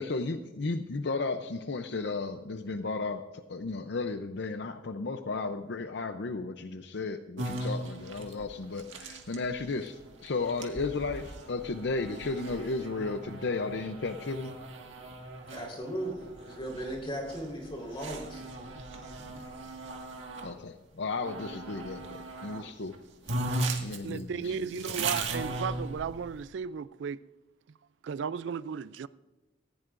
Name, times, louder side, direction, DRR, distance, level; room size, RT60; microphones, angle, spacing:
voice 1, 0.0-3.2 3.5-14.6 20.4-22.9 23.8-25.1, left 3 dB, 65° left, 0.6 m, -34 dB
sound 1, 7.4-20.5 21.2-22.6 22.9-23.0 23.3-26.4, right 2 dB, 85° right, 1.8 m, -38 dB
voice 2, 15.5-18.4, right 1 dB, 30° left, 4.1 m, -37 dB
voice 3, 24.0-27.2 28.0-29.1, right 6 dB, 70° right, 0.3 m, -35 dB
19.0 x 15.5 x 2.6 m
head